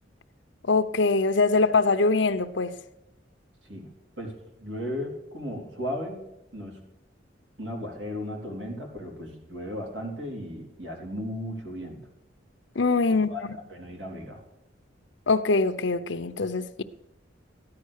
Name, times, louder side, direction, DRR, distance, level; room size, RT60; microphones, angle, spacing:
voice 1, 0.6-2.7 12.8-13.3 15.3-16.8, left 3 dB, 80° left, 0.8 m, -23 dB
voice 2, 4.6-6.3 6.5-6.8 7.6-12.0 13.1-13.4 13.7-14.4, left 1 dB, 75° right, 3.8 m, -35 dB
14.5 x 10.5 x 6.6 m
head